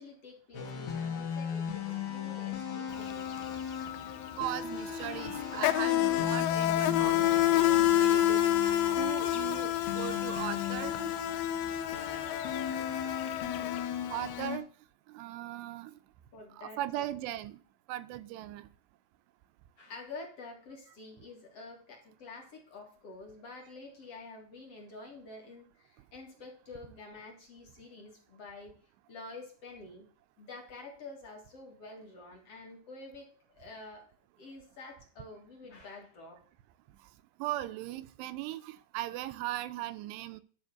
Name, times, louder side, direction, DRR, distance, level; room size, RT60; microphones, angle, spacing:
voice 1, 0.0-3.3 16.3-17.1 19.8-28.8 29.1-30.1 30.4-34.1 34.4-36.4, left 3 dB, 45° left, 2.4 m, -48 dB
sound 1, 0.5-14.6, left 7 dB, 65° left, 3.7 m, -38 dB
Insect, 2.9-3.1 3.4-14.4, left 13 dB, 85° left, 2.1 m, -29 dB
voice 2, 4.4-8.7 9.0-11.1 14.1-14.7 15.1-16.0 16.5-17.6 17.9-18.7 37.4-40.4, right 14 dB, 80° right, 2.7 m, -38 dB
12.0 x 4.2 x 6.7 m
omnidirectional pair, 5.1 m